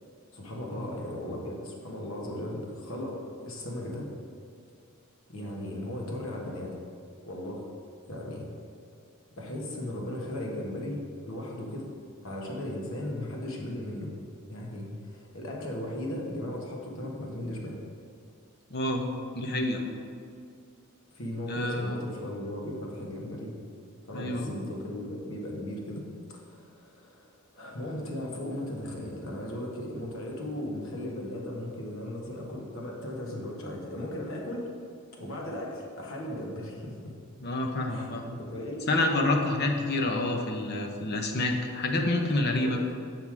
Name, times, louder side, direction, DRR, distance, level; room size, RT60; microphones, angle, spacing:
voice 1, 0.3-4.1 5.3-6.8 7.3-7.6 8.1-8.5 9.4-11.9 12.2-14.1 14.5-17.8 21.1-23.5 24.1-26.0 26.3-27.3 27.5-34.7 35.1-37.1 37.9-38.8 42.6-42.9, left 1 dB, 65° left, -1 dB, 1.4 m, -37 dB
voice 2, 18.7-19.0 19.3-19.8 21.5-22.0 24.1-24.5 37.4-38.3 38.9-42.8, left 2 dB, 50° left, 3 dB, 0.9 m, -28 dB
7.4 x 5.6 x 4.8 m, 2.4 s
head